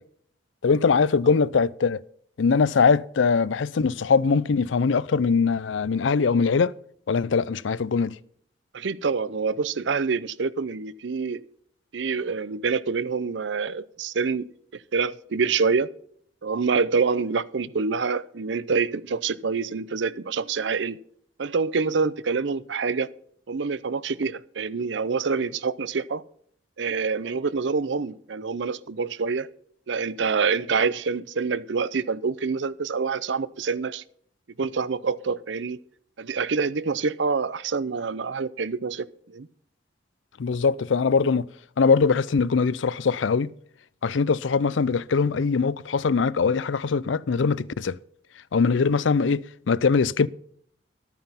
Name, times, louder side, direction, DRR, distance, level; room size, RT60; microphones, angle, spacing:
voice 1, 0.6-2.0 2.4-6.7 7.1-8.2 40.4-41.5 41.8-43.5 44.0-48.0 48.5-50.3, left 5 dB, 85° left, 0.5 m, -22 dB
voice 2, 8.7-11.4 11.9-15.9 16.4-21.0 21.4-23.1 23.5-26.2 26.8-29.5 29.9-34.0 34.6-35.8 36.2-39.5, right 5 dB, 75° right, 0.6 m, -26 dB
12.5 x 9.2 x 5.6 m
head